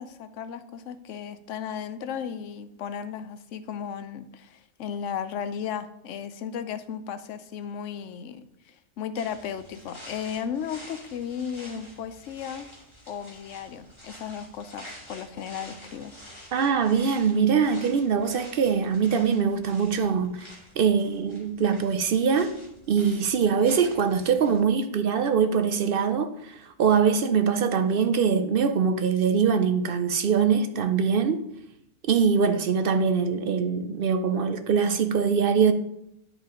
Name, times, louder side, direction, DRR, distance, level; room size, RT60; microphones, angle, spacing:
voice 1, 0.0-12.7 13.1-16.1, left 8 dB, 90° left, 1.0 m, -35 dB
sound 1, 9.1-24.6, equal, 25° left, 2.4 m, -48 dB
voice 2, 16.5-22.5 22.9-31.4 32.1-35.7, right 6 dB, 60° right, 0.7 m, -23 dB
10.5 x 4.9 x 3.7 m
omnidirectional pair, 1.2 m